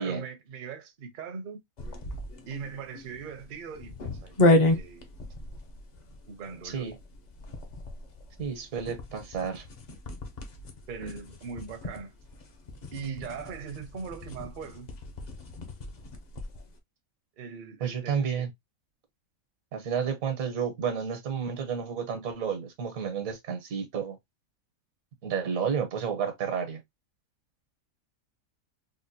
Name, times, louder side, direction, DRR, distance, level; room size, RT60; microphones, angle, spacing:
voice 1, 0.0-1.6 2.5-5.1 6.3-6.9 10.9-12.1 12.9-14.9 17.4-18.5, right 6 dB, 50° right, 0.7 m, -40 dB
sound 1, 1.8-16.7, left 1 dB, 45° left, 0.5 m, -32 dB
voice 2, 8.4-9.6 17.8-18.5 19.7-24.2 25.2-26.8, right 7 dB, 80° right, 1.4 m, -31 dB
3.7 x 2.2 x 2.6 m
omnidirectional pair, 1.4 m